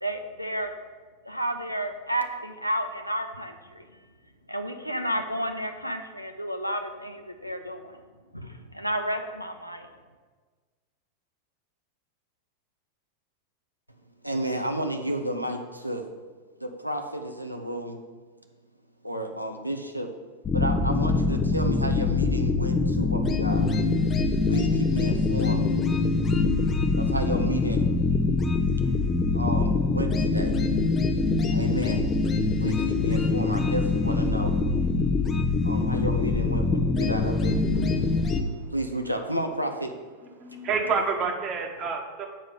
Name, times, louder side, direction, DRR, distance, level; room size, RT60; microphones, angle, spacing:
voice 1, 0.0-0.7 1.3-3.8 4.5-8.0 8.3-9.9, right 1 dB, 90° left, 6 dB, 0.7 m, -31 dB
voice 2, 14.2-16.1 16.6-18.0 19.0-20.1 20.5-23.7 24.5-25.6 27.0-27.9 29.3-30.5 31.5-32.0 32.6-34.5 35.6-37.6 38.7-39.9 40.4-40.6, right 1 dB, 90° right, 4 dB, 0.8 m, -32 dB
sound 1, 20.4-38.4, left 3 dB, 25° left, 0.7 m, -24 dB
voice 3, 37.7-38.7 39.3-39.5 39.9-42.3, right 5 dB, 35° right, 4 dB, 1.3 m, -31 dB
7.6 x 5.0 x 7.1 m, 1.4 s
figure-of-eight pair, 90°, 0 cm